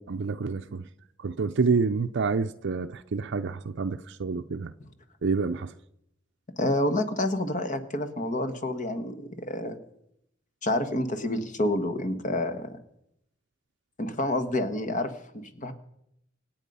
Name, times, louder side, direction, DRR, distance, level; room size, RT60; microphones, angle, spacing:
voice 1, 0.1-0.9 1.2-4.7 5.2-5.7, right 4 dB, 60° right, 0.5 m, -28 dB
voice 2, 6.6-9.8 10.6-12.8 14.0-15.7, left 1 dB, 40° left, 1.4 m, -28 dB
26.0 x 9.1 x 5.5 m
head